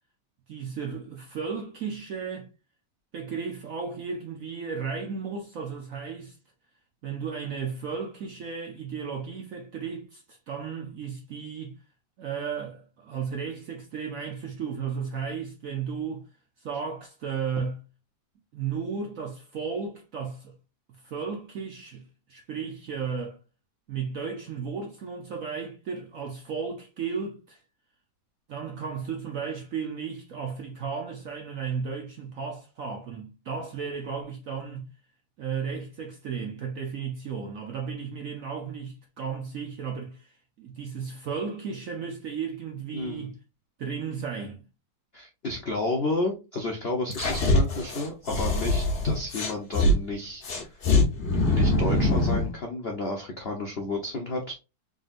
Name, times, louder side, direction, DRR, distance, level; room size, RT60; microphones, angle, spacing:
voice 1, 0.5-2.5 3.1-6.4 7.0-11.8 12.2-16.2 16.6-17.8 18.5-20.5 21.0-23.4 23.9-27.6 28.5-34.9 35.4-43.3 43.8-44.6, right 6 dB, 65° right, 0.8 m, -34 dB
voice 2, 42.9-43.3 45.1-50.8 51.5-54.5, left 2 dB, 80° left, 0.5 m, -31 dB
sound 1, 47.1-49.9 50.4-52.5, left 1 dB, 45° left, 1.1 m, -23 dB
3.8 x 3.7 x 2.5 m
omnidirectional pair, 2.1 m